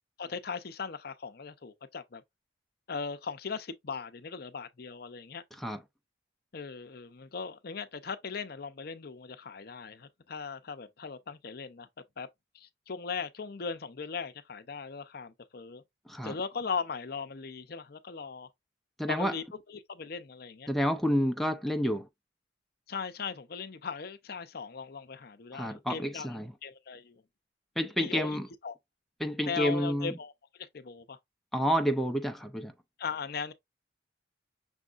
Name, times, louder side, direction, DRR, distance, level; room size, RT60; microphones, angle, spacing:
voice 1, 0.2-2.2 2.9-5.4 6.5-11.9 12.2-12.3 12.5-15.8 16.2-18.5 19.1-20.7 22.9-27.2 28.0-28.4 28.6-28.8 29.5-30.3 30.6-31.2 33.0-33.5, left 5 dB, 55° left, 0.6 m, -38 dB
voice 2, 19.0-19.3 20.7-22.1 25.5-26.5 27.8-28.5 29.2-30.1 31.5-32.7, equal, ahead, 0.5 m, -29 dB
6.2 x 3.5 x 2.4 m
head